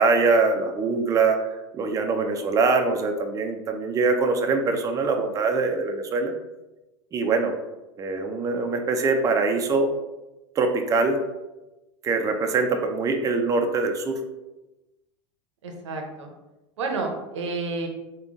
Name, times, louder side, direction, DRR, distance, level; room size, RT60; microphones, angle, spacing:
voice 1, 0.0-1.4 1.7-6.3 7.1-7.5 8.0-9.9 10.6-11.2 12.0-14.2, right 4 dB, 20° right, 4 dB, 0.5 m, -23 dB
voice 2, 15.6-16.3 16.8-17.9, right 3 dB, 85° right, 3 dB, 0.7 m, -30 dB
3.7 x 2.2 x 3.5 m, 1.0 s
hypercardioid pair, 105°, 15 cm